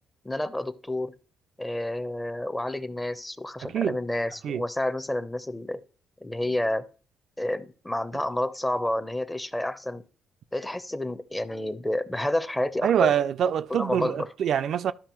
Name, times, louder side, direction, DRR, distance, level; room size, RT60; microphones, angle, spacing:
voice 1, 0.2-1.1 1.6-5.8 6.2-6.9 7.4-10.0 10.5-13.2 13.7-14.3, left 1 dB, 10° left, 0.6 m, -29 dB
voice 2, 3.6-4.0 4.4-4.6 12.8-14.9, right 9 dB, 65° right, 0.3 m, -25 dB
13.0 x 5.1 x 3.0 m
cardioid pair, 90°, 0 cm